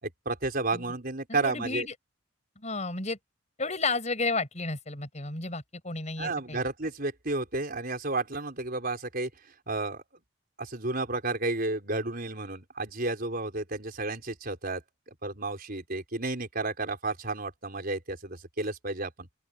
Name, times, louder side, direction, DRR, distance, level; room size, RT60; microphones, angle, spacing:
voice 1, 0.0-1.9 6.2-9.3 9.7-10.0 10.6-14.8 15.1-19.3, right 2 dB, 45° right, 5.0 m, -32 dB
voice 2, 1.3-1.9 2.6-3.2 3.6-6.6, left 3 dB, 35° left, 6.1 m, -32 dB
open air
head